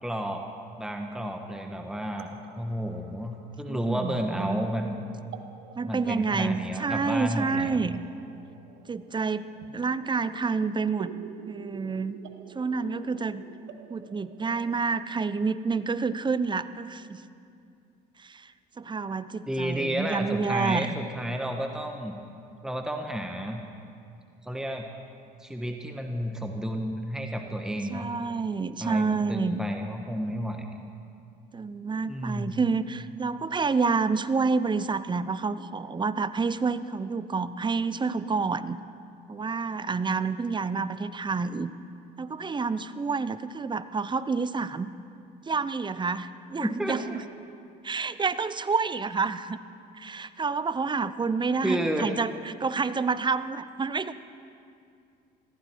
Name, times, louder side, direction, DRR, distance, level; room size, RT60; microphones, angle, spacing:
voice 1, 0.0-0.5 0.8-5.0 5.8-7.9 19.5-22.2 22.6-23.6 24.4-24.9 25.4-28.1 28.8-30.7 32.1-32.6 46.6-47.2 51.6-52.2, equal, 5° right, 4 dB, 1.4 m, -31 dB
sound 1, 1.1-14.8, right 8 dB, 60° right, 1.1 m, -49 dB
voice 2, 3.7-4.7 5.8-8.0 8.9-9.5 9.7-11.1 11.5-12.2 12.5-13.4 13.9-17.2 18.2-18.5 18.8-21.0 27.9-29.6 31.5-38.8 39.3-41.7 42.2-44.9 45.5-47.2 47.8-49.6 49.9-54.1, right 4 dB, 20° right, 15 dB, 0.7 m, -28 dB
21.0 x 15.0 x 4.6 m, 2.4 s
hypercardioid pair, 65°, 21 cm